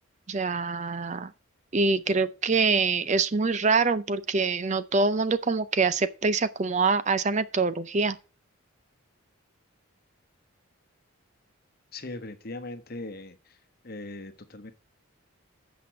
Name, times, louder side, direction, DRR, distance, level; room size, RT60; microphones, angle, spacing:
voice 1, 0.3-1.3 1.7-8.2, right 4 dB, 35° right, 0.5 m, -25 dB
voice 2, 11.9-13.6 13.8-14.7, left 2 dB, 45° left, 1.1 m, -39 dB
8.2 x 6.1 x 7.3 m
head